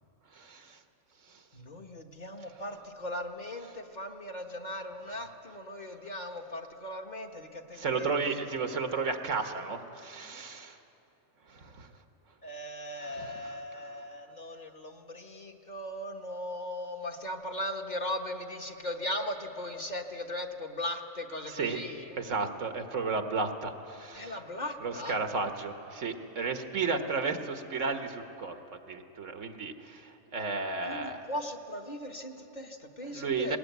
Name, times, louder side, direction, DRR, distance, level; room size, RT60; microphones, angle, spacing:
voice 1, 0.3-0.8 1.3-1.4 5.1-5.2 7.7-10.8 11.5-11.9 13.0-14.0 21.5-21.8 22.2-24.4 24.8-31.3 33.1-33.6, right 4 dB, 90° right, 6 dB, 1.6 m, -34 dB
voice 2, 1.5-8.1 12.4-22.2 24.1-25.2 30.8-33.6, left 1 dB, 40° left, 3 dB, 1.3 m, -38 dB
19.5 x 18.5 x 9.3 m, 2.9 s
omnidirectional pair, 1.2 m